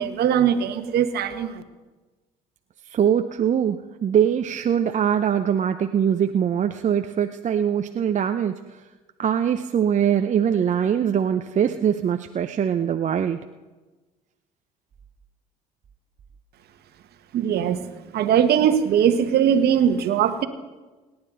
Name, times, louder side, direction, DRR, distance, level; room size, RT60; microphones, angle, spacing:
voice 1, 0.0-1.6 17.3-17.8 18.1-20.5, right 9 dB, 55° right, 9 dB, 1.4 m, -20 dB
voice 2, 2.9-8.8 9.2-13.4, right 8 dB, 40° right, 7 dB, 0.7 m, -22 dB
28.5 x 9.7 x 4.1 m, 1.3 s
hypercardioid pair, 60°, 19 cm